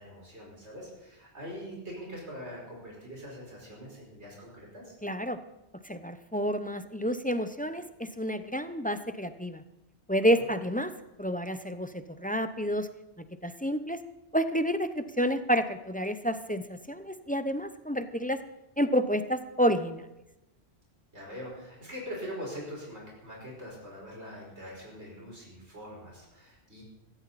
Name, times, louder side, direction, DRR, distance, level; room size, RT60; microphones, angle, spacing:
voice 1, 0.0-4.9 21.1-26.8, equal, 90° right, -3 dB, 5.3 m, -43 dB
voice 2, 5.0-5.4 5.9-9.6 10.1-10.9 11.2-12.9 13.4-14.0 14.3-18.4 18.8-20.0, equal, 10° left, 10 dB, 0.5 m, -29 dB
17.0 x 15.5 x 4.2 m, 0.95 s
omnidirectional pair, 1.1 m